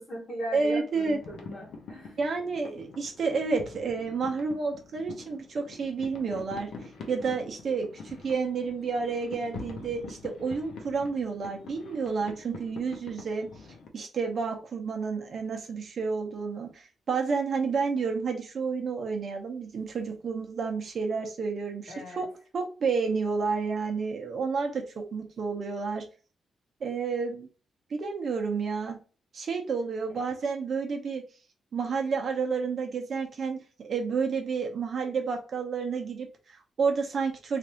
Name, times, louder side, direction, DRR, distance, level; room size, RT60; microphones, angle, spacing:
voice 1, 0.0-2.2 21.9-22.3, equal, 40° left, -4 dB, 1.1 m, -38 dB
voice 2, 0.5-1.2 2.2-6.7 7.1-13.5 13.9-22.3 22.5-26.0 26.8-27.5 27.9-29.0 29.3-31.2 31.7-37.6, right 5 dB, 45° right, 2 dB, 0.9 m, -30 dB
sound 1, 1.0-13.9, left 4 dB, 80° left, 0.8 m, -45 dB
3.3 x 2.6 x 4.3 m, 0.35 s
wide cardioid pair, 160°, 0 cm